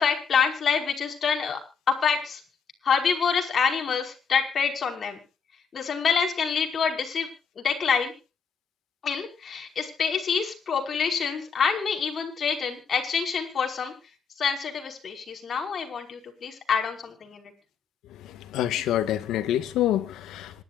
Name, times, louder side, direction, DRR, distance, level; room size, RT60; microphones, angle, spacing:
voice 1, 0.0-1.6 1.9-2.4 2.8-5.2 5.7-7.3 7.6-8.1 9.0-13.9 14.4-17.5, left 6 dB, 50° left, 5.4 m, -26 dB
voice 2, 18.5-20.5, left 12 dB, 85° left, 1.9 m, -26 dB
26.0 x 12.5 x 2.6 m
cardioid pair, 90°, 0 cm